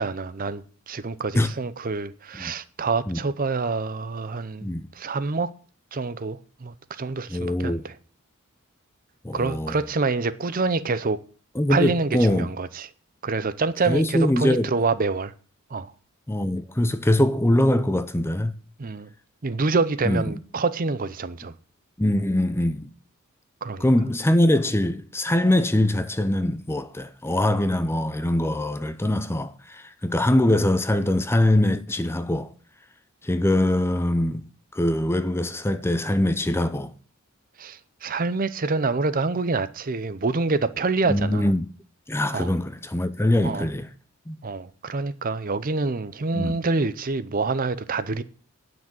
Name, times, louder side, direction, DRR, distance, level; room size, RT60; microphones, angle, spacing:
voice 1, 0.0-4.7 5.0-5.5 5.9-7.9 9.3-11.2 11.7-12.9 13.2-15.3 15.7-15.9 18.8-19.1 19.4-21.5 23.6-23.8 37.6-41.5 42.3-42.5 43.4-43.7 44.4-48.2, right 3 dB, 40° right, 0.6 m, -26 dB
voice 2, 7.3-7.9 9.2-9.8 11.5-12.5 13.9-14.7 16.3-18.5 20.1-20.3 22.0-22.9 23.8-32.5 33.2-34.4 34.7-36.9 41.1-41.7 42.1-43.9 44.3-44.4 46.3-46.6, left 1 dB, 10° left, 0.6 m, -23 dB
9.9 x 6.1 x 8.8 m
head